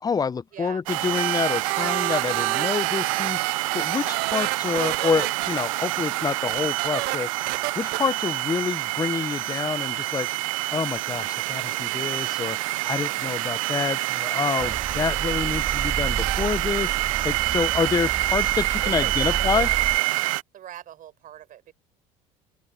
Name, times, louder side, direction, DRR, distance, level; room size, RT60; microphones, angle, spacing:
voice 1, 0.0-3.4 3.7-7.3 7.8-10.3 10.7-17.0 17.2-19.7, left 5 dB, 20° left, 0.5 m, -27 dB
voice 2, 0.5-0.8 14.5-14.8 18.8-20.2 20.5-21.7, right 11 dB, 55° right, 4.6 m, -41 dB
sound 1, 0.9-20.4, right 19 dB, 85° right, 0.4 m, -27 dB
sound 2, 1.1-5.6 6.2-6.3 6.5-7.2 7.5-8.0 12.3-12.4 16.1-16.4, right 22 dB, 70° right, 1.2 m, -29 dB
sound 3, 14.6-20.0, right 5 dB, 30° right, 3.1 m, -32 dB
open air
hypercardioid pair, 75°, 17 cm